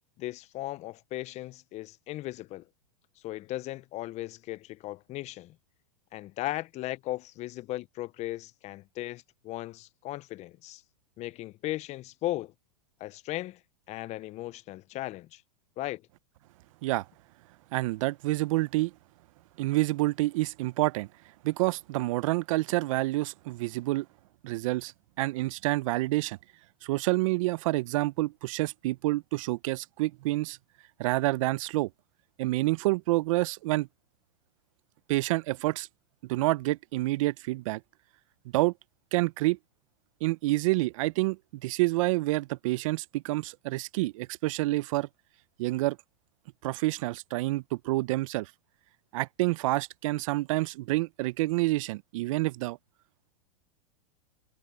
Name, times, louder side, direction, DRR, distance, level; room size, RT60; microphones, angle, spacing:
voice 1, 0.2-2.6 3.2-5.5 6.1-10.8 11.2-12.5 13.0-13.6 13.9-15.4 15.8-16.0, left 16 dB, 35° left, 0.9 m, -37 dB
voice 2, 17.7-18.9 19.6-21.1 21.4-24.1 24.4-24.9 25.2-26.4 26.8-30.6 31.0-31.9 32.4-33.9 35.1-35.9 36.3-37.8 38.5-38.7 39.1-39.6 40.2-45.1 45.6-46.0 46.6-48.5 49.1-52.8, right 19 dB, 60° right, 0.9 m, -28 dB
hypercardioid pair, 110°, 19 cm